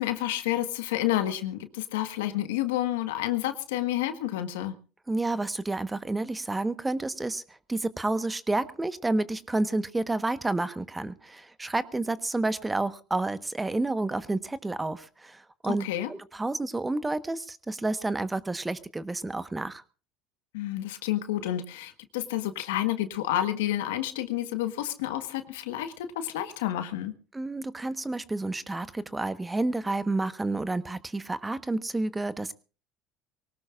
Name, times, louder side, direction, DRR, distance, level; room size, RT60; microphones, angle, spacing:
voice 1, 0.0-4.7 15.8-16.1 20.5-27.1, left 13 dB, 80° left, 9 dB, 1.5 m, -29 dB
voice 2, 5.1-7.4 7.7-19.8 27.3-32.5, right 2 dB, 15° right, 13 dB, 1.1 m, -30 dB
24.0 x 18.5 x 2.5 m, 0.35 s
hypercardioid pair, 80°, 0 cm